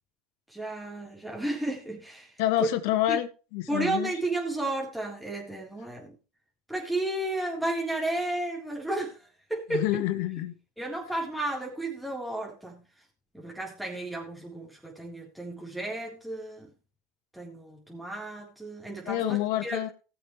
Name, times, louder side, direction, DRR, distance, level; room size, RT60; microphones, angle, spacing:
voice 1, 0.5-2.3 2.6-2.7 3.1-3.2 3.7-6.1 6.7-9.2 9.5-9.8 10.8-12.8 13.3-16.7 17.3-19.9, right 2 dB, ahead, 3.7 m, -33 dB
voice 2, 2.4-4.1 9.7-10.5 19.0-19.9, left 14 dB, 70° left, 1.8 m, -28 dB
19.5 x 6.8 x 3.2 m
supercardioid pair, 105°, 0 cm